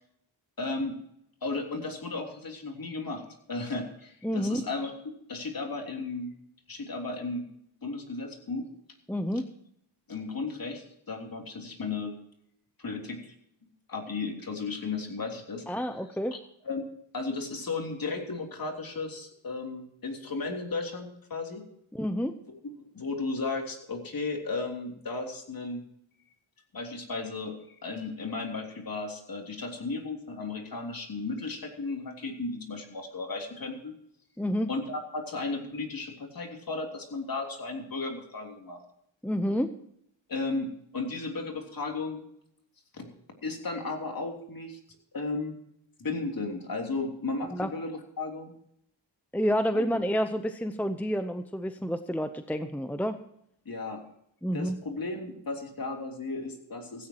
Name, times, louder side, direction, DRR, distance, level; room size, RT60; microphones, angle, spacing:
voice 1, 0.6-1.0 1.4-3.2 3.5-4.9 5.3-6.3 6.7-7.5 7.8-8.7 10.1-12.1 12.8-13.3 13.9-15.6 16.6-16.8 17.1-21.6 22.6-25.8 26.7-27.5 27.8-33.9 34.7-38.8 40.3-42.2 42.9-43.1 43.4-44.8 45.1-45.6 46.0-48.5 49.7-49.8 53.6-54.0 54.5-57.1, left 3 dB, 45° left, 2 dB, 3.3 m, -34 dB
voice 2, 4.2-4.6 9.1-9.5 15.7-16.4 21.9-22.4 34.4-34.7 39.2-39.7 47.5-47.7 49.3-53.2 54.4-54.8, equal, 5° left, 9 dB, 0.7 m, -29 dB
16.5 x 15.5 x 3.0 m, 0.73 s
wide cardioid pair, 110°, 47 cm